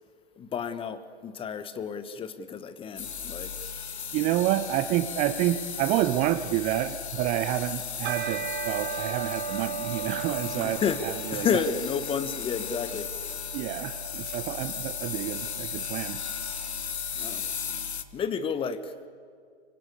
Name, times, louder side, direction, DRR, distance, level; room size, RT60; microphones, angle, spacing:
voice 1, 0.4-3.5 10.4-11.1 11.3-13.1 17.1-17.4 18.1-18.9, left 6 dB, 15° left, 1.3 m, -31 dB
sound 1, 3.0-18.0, left 7 dB, 75° left, 1.8 m, -36 dB
voice 2, 4.1-11.6 13.5-16.2, right 14 dB, 20° right, 0.7 m, -29 dB
sound 2, 8.0-17.2, right 7 dB, 50° right, 6.8 m, -38 dB
27.5 x 25.5 x 8.4 m
figure-of-eight pair, 120°, 33 cm